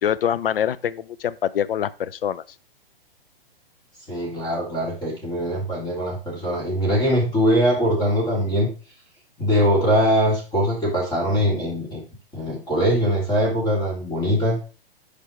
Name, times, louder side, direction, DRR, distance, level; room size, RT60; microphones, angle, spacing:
voice 1, 0.0-2.4, left 9 dB, 70° left, 0.6 m, -24 dB
voice 2, 4.1-8.7 9.4-12.0 12.3-14.6, equal, 15° left, 2.9 m, -22 dB
8.9 x 5.0 x 3.3 m
figure-of-eight pair, 120°, 30 cm